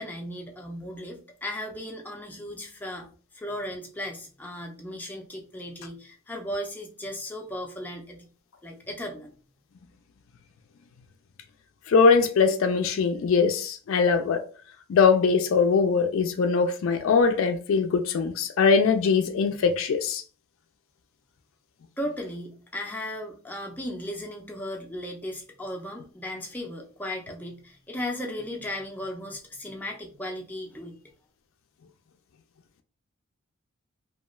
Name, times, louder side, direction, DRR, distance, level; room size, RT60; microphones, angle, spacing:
voice 1, 0.0-3.1 3.3-8.3 8.6-9.3 22.0-31.0, left 1 dB, 10° left, 0.5 m, -36 dB
voice 2, 11.9-14.4 14.9-20.2, left 5 dB, 70° left, 0.3 m, -21 dB
2.3 x 2.2 x 3.0 m
head